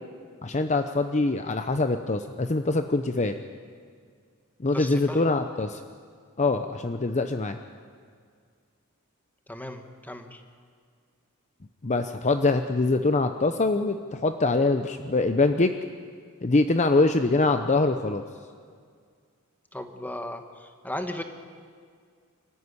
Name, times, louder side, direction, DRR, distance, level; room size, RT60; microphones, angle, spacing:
voice 1, 0.4-3.4 4.6-5.8 6.4-7.6 11.8-15.7 16.4-18.2, left 3 dB, 30° left, 8 dB, 0.7 m, -24 dB
voice 2, 4.7-5.3 9.5-10.4 19.7-21.2, left 1 dB, 10° left, 6 dB, 1.5 m, -36 dB
25.5 x 14.5 x 9.8 m, 2.1 s
head